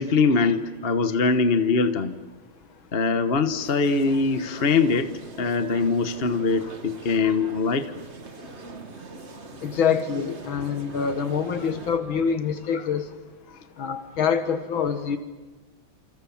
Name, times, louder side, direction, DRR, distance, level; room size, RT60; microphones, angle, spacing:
voice 1, 0.0-2.2 2.9-5.1 5.4-7.9 12.7-12.8 13.5-13.6, left 4 dB, 35° left, 9 dB, 1.2 m, -22 dB
sound 1, 3.6-12.0, right 4 dB, 35° right, 1.8 m, -42 dB
voice 2, 9.6-13.0 13.8-15.2, left 7 dB, 85° left, 8 dB, 2.3 m, -25 dB
28.5 x 27.5 x 7.2 m, 1.2 s
omnidirectional pair, 2.1 m